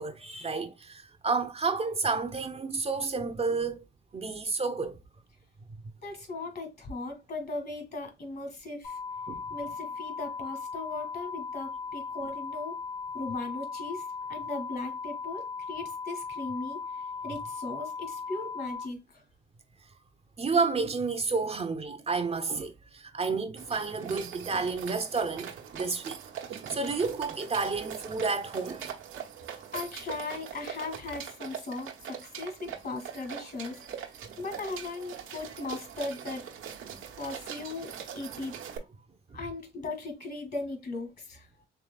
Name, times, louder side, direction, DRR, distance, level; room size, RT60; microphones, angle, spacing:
voice 1, 0.0-3.8 4.1-5.0 9.3-9.4 20.4-26.2 26.5-28.9, right 4 dB, 30° right, 0.7 m, -30 dB
voice 2, 6.0-9.0 9.5-12.8 13.1-16.8 17.2-19.2 29.5-36.5 37.2-38.6 39.3-41.5, left 3 dB, 55° left, 2.0 m, -38 dB
sound 1, 8.8-18.9, left 5 dB, 90° left, 1.7 m, -38 dB
sound 2, 23.6-38.8, right 8 dB, 85° right, 1.0 m, -42 dB
4.8 x 3.4 x 2.3 m
cardioid pair, 90°, 20 cm